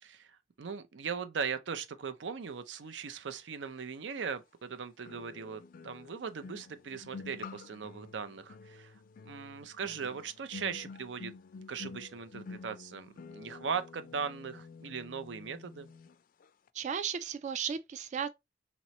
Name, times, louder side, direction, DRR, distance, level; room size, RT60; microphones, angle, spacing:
voice 1, 0.0-9.0 9.2-11.3 11.7-15.9, right 6 dB, 90° right, 0.5 m, -39 dB
sound 1, 3.7-3.8 5.1-16.2 16.4-16.7, left 4 dB, 50° left, 0.4 m, -49 dB
voice 2, 16.7-18.3, right 7 dB, 40° right, 0.3 m, -35 dB
3.0 x 3.0 x 4.1 m
head